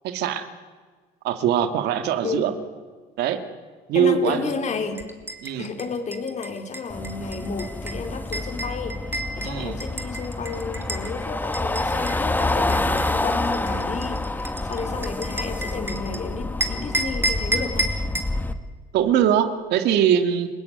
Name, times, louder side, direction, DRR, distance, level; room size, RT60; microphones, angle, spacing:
voice 1, 0.0-0.5 1.2-2.5 3.2-3.4 3.9-4.5 5.4-5.7 9.4-9.8 18.9-20.5, right 9 dB, 80° right, 8 dB, 2.3 m, -22 dB
voice 2, 3.9-5.0 5.6-9.0 9.3-17.9, left 5 dB, 45° left, 6 dB, 3.9 m, -32 dB
sound 1, 5.0-11.1 11.5-16.2 16.6-18.3, right 1 dB, 15° right, 3.2 m, -31 dB
sound 2, 6.9-18.5, left 2 dB, 10° left, 1.6 m, -28 dB
29.0 x 17.0 x 9.6 m, 1.5 s
cardioid pair, 110°, 17 cm